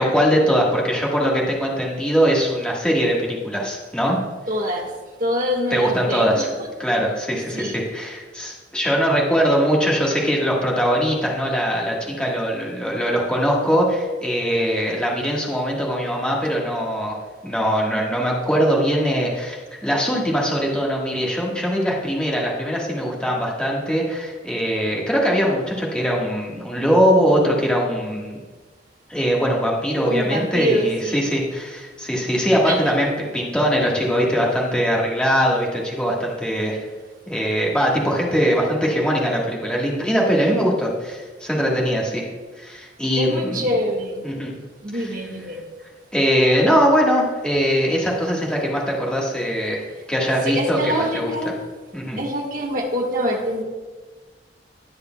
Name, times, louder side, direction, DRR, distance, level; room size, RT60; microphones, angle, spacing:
voice 1, 0.0-4.2 5.7-6.5 6.8-17.1 17.4-28.4 29.1-36.8 37.3-42.3 42.6-43.6 44.2-44.5 44.9-45.1 46.1-51.3 51.9-52.2, equal, 5° left, -3 dB, 1.5 m, -21 dB
voice 2, 4.5-4.9 5.2-6.5 7.5-7.8 30.1-31.3 32.6-32.9 43.1-44.2 44.8-45.6 50.4-51.5 52.2-53.6, equal, 50° right, 0 dB, 1.4 m, -25 dB
19.0 x 6.7 x 2.3 m, 1.3 s
head